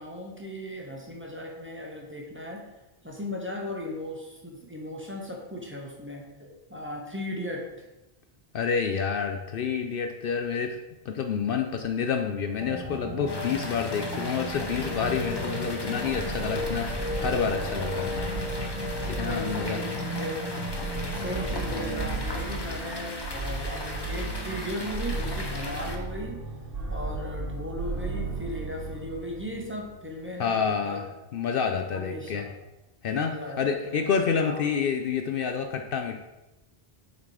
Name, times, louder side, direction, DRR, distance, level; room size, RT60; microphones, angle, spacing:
voice 1, 0.0-2.6 3.0-7.7 19.2-20.4 21.1-26.4 26.9-31.0 31.9-32.5 33.1-34.0 34.4-34.6, equal, 10° right, -1 dB, 1.1 m, -37 dB
voice 2, 8.5-10.8 11.0-18.3 19.1-19.8 30.4-31.0 31.3-32.5 33.0-36.2, left 6 dB, 65° left, 5 dB, 0.7 m, -28 dB
sound 1, 12.6-22.2, left 1 dB, 30° right, 1.7 m, -35 dB
sound 2, 13.3-26.0, left 2 dB, 25° left, 0.8 m, -38 dB
sound 3, 14.5-30.1, right 3 dB, 60° right, 1.1 m, -35 dB
7.1 x 4.2 x 4.8 m, 1.0 s
omnidirectional pair, 1.1 m